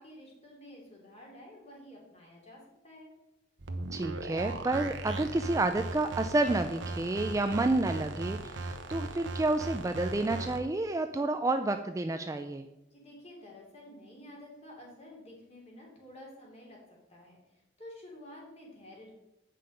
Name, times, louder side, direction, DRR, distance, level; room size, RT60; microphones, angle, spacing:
voice 1, 0.0-3.1 12.9-16.8 17.1-17.4 17.8-19.1, left 1 dB, 35° left, -3 dB, 2.9 m, -50 dB
sound 1, 3.6-10.6, right 2 dB, 80° right, 0.9 m, -38 dB
voice 2, 3.9-12.7, right 2 dB, 15° right, 7 dB, 0.4 m, -30 dB
8.4 x 5.8 x 5.2 m, 0.94 s
head